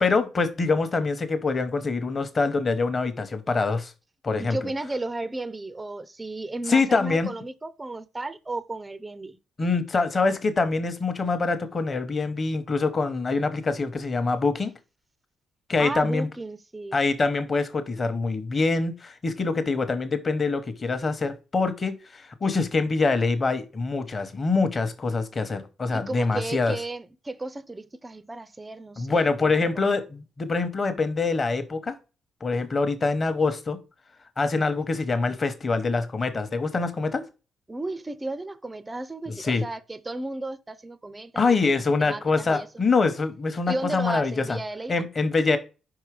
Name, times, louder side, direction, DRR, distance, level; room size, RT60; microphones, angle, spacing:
voice 1, 0.0-3.9 4.2-4.6 6.7-7.3 9.6-14.7 15.7-16.3 16.9-26.8 29.0-31.9 32.4-33.8 34.4-37.2 39.4-39.6 41.3-44.6 44.9-45.6, left 3 dB, 25° left, 0.9 m, -25 dB
voice 2, 4.4-9.4 15.8-17.0 25.9-30.0 37.7-42.7 43.7-45.0, right 2 dB, 15° right, 0.4 m, -34 dB
5.3 x 4.7 x 4.7 m
cardioid pair, 160°, 0 cm